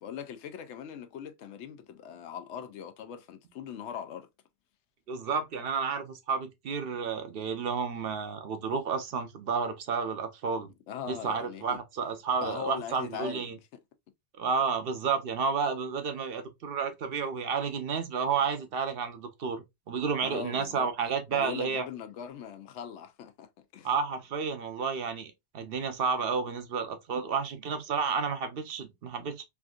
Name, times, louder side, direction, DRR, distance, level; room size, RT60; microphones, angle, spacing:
voice 1, 0.0-4.3 10.9-11.8 12.4-13.5 20.2-20.9 21.3-23.9, left 8 dB, 90° left, 0.9 m, -40 dB
voice 2, 5.1-10.7 11.1-13.6 14.4-21.8 23.8-29.4, right 5 dB, 65° right, 0.8 m, -31 dB
3.5 x 2.5 x 2.3 m
omnidirectional pair, 1.1 m